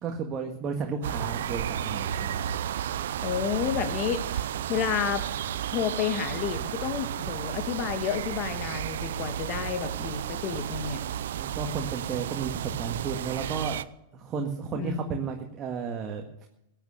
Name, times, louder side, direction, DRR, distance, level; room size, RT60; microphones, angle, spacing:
voice 1, 0.0-2.4 11.3-13.8 14.1-16.5, right 5 dB, 30° right, 3 dB, 1.8 m, -33 dB
sound 1, 1.0-13.8, right 10 dB, 70° right, 0.6 m, -33 dB
voice 2, 3.2-4.2 4.7-5.2 5.7-11.0 14.7-15.2, left 8 dB, 45° left, 8 dB, 2.0 m, -30 dB
16.0 x 9.2 x 6.5 m, 0.82 s
hypercardioid pair, 110°, 0 cm